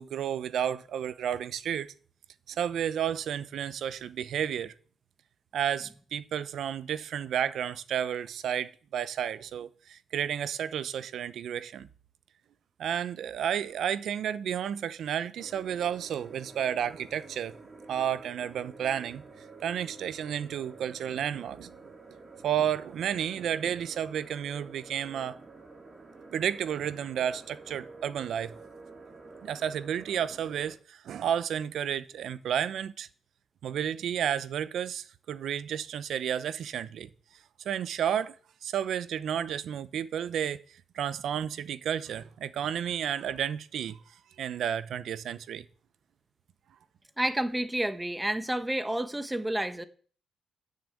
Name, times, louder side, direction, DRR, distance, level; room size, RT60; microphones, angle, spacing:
voice 1, 0.0-1.9 2.5-4.7 5.5-11.9 12.8-17.6 17.9-19.2 19.6-21.7 22.4-25.4 26.3-28.5 29.4-33.1 33.6-37.1 37.6-38.4 38.6-44.0 44.4-45.6, right 9 dB, 70° right, 0.8 m, -32 dB
sound 1, 15.4-30.8, right 3 dB, 30° right, 3.3 m, -50 dB
voice 2, 47.2-49.8, right 1 dB, 10° right, 1.3 m, -30 dB
13.5 x 6.7 x 8.5 m
cardioid pair, 90°, 0 cm